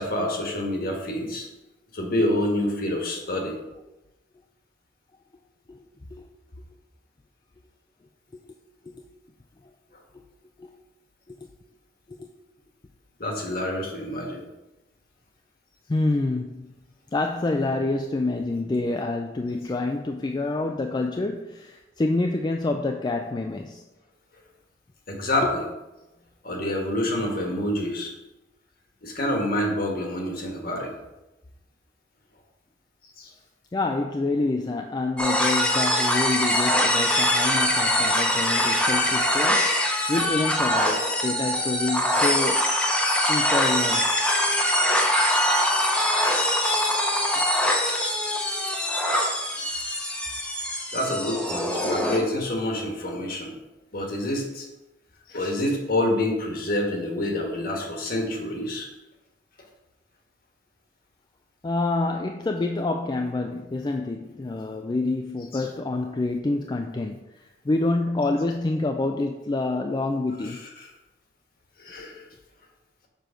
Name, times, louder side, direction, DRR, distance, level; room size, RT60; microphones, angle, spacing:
voice 1, 0.0-1.5 1.9-3.6 13.2-14.4 25.1-25.6 26.4-28.1 29.0-30.9 33.2-33.3 46.2-46.7 50.9-53.6 53.9-54.7 55.3-58.9 65.5-65.7 70.4-70.9 71.8-72.3, left 1 dB, 50° left, 1 dB, 1.5 m, -27 dB
voice 2, 5.7-6.3 8.3-8.4 8.8-9.1 10.6-10.7 11.3-11.5 12.1-12.3 15.9-16.7 17.1-23.8 25.4-25.5 33.7-42.7 43.3-44.1 47.3-47.5 61.6-70.6, left 2 dB, 25° left, 4 dB, 0.3 m, -27 dB
sound 1, 35.2-52.2, left 1 dB, 5° left, 0.8 m, -23 dB
6.7 x 4.6 x 5.1 m, 1.0 s
head